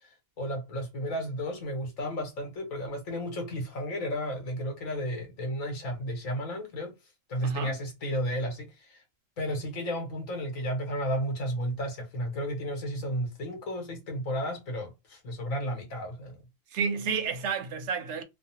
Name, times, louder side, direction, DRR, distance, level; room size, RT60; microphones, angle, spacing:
voice 1, 0.4-6.9 7.3-9.0 9.4-16.4, equal, 80° left, 1.5 m, -33 dB
voice 2, 7.4-7.8 16.7-18.2, right 5 dB, 65° right, 0.8 m, -30 dB
3.1 x 2.1 x 2.7 m
omnidirectional pair, 1.4 m